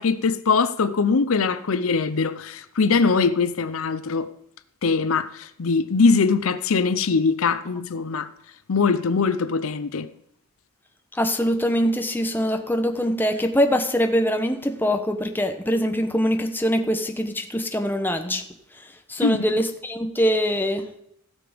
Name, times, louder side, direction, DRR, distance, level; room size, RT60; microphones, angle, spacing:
voice 1, 0.0-4.3 4.8-8.3 8.7-10.1 19.2-19.4, left 4 dB, 70° left, 0.6 m, -22 dB
voice 2, 11.1-18.4 18.7-20.9, equal, 10° left, 1.0 m, -23 dB
16.0 x 6.9 x 5.1 m
head